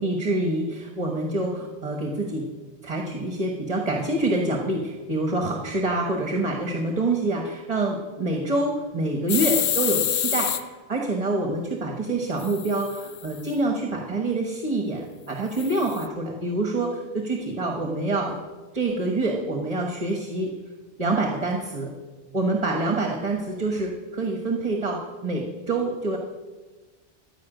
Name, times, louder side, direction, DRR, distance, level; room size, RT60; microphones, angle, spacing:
voice 1, 0.0-2.5 2.8-18.4 18.7-20.5 21.0-21.9 22.3-26.2, right 2 dB, 35° right, 2 dB, 1.3 m, -26 dB
sound 1, 9.3-10.6 12.4-13.4 15.6-16.1, left 10 dB, 80° left, 1.0 m, -27 dB
13.0 x 5.5 x 9.2 m, 1.3 s
omnidirectional pair, 1.2 m